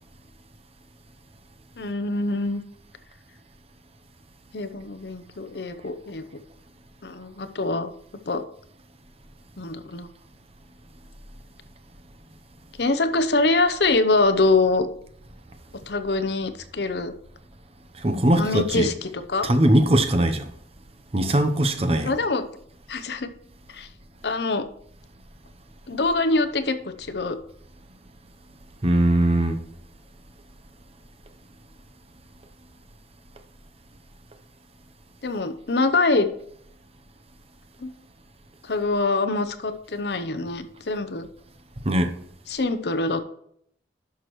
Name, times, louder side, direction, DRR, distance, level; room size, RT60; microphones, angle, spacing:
voice 1, 1.8-2.6 4.5-6.2 7.0-7.9 8.3-8.4 9.6-10.1 12.8-14.9 15.9-17.1 18.4-19.5 22.0-22.5 22.9-23.3 23.7-23.9 24.2-24.6 25.9-27.4 35.2-36.3 37.8-37.9 38.6-41.3 42.5-43.2, left 3 dB, 65° left, 0.7 m, -24 dB
voice 2, 18.0-18.9 19.4-20.5 21.1-22.2 28.8-29.6 41.8-42.1, right 1 dB, 35° right, 0.8 m, -20 dB
11.0 x 6.2 x 3.1 m
head